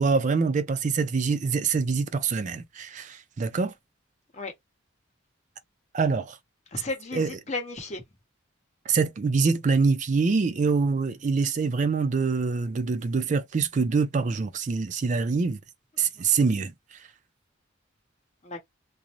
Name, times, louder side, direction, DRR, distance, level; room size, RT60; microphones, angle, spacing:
voice 1, 0.0-3.7 5.9-6.4 7.1-7.3 8.9-15.6 16.0-16.7, right 4 dB, 35° right, 0.3 m, -25 dB
voice 2, 6.7-8.0 16.0-16.3 18.4-18.6, left 3 dB, 35° left, 0.9 m, -35 dB
2.5 x 2.0 x 3.0 m
head